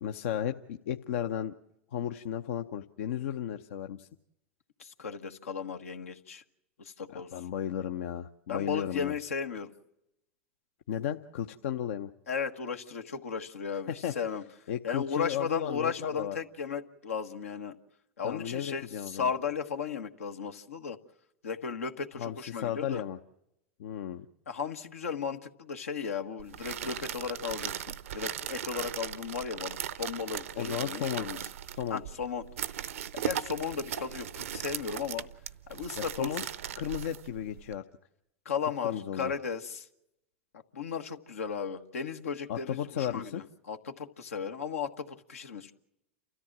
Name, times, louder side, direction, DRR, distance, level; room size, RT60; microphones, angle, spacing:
voice 1, 0.0-1.5 1.9-4.1 7.1-9.1 10.9-12.1 13.9-14.1 14.7-16.4 18.2-19.3 22.2-23.2 23.8-24.3 30.5-31.3 31.8-32.0 36.0-36.5 36.8-37.9 38.8-39.3 42.5-43.4, left 9 dB, 70° left, 7 dB, 0.7 m, -34 dB
voice 2, 4.8-6.4 6.8-7.3 8.5-9.7 12.3-14.4 14.8-17.8 18.2-21.0 21.4-23.0 24.5-31.4 31.9-32.4 33.1-35.3 35.7-36.4 38.4-39.9 40.7-45.7, left 6 dB, 90° left, 6 dB, 1.4 m, -35 dB
sound 1, 26.4-37.8, right 10 dB, 80° right, 0.7 m, -38 dB
29.5 x 14.0 x 7.3 m, 0.85 s
hypercardioid pair, 105°, 7 cm